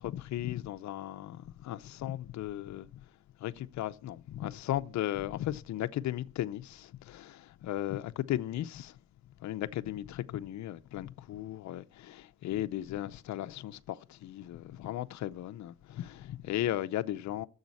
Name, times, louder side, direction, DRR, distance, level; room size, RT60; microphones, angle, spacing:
voice 1, 0.0-3.0 3.4-9.0 9.4-17.5, left 13 dB, 65° left, 0.7 m, -36 dB
10.0 x 7.2 x 8.3 m
cardioid pair, 90°, 30 cm